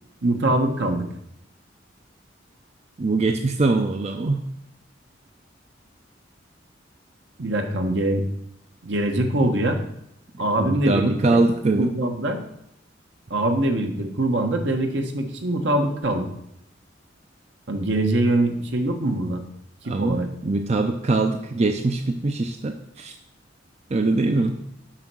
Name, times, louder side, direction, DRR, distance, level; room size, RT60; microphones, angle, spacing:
voice 1, 0.2-1.1 7.4-8.2 8.8-9.8 10.4-11.4 11.8-12.4 13.3-16.3 17.7-19.4 19.8-20.3, right 1 dB, 70° right, 4 dB, 1.2 m, -23 dB
voice 2, 3.0-4.4 10.6-11.9 19.8-23.1 23.9-24.6, right 3 dB, 35° right, 5 dB, 0.5 m, -22 dB
7.3 x 5.5 x 6.2 m, 0.77 s
head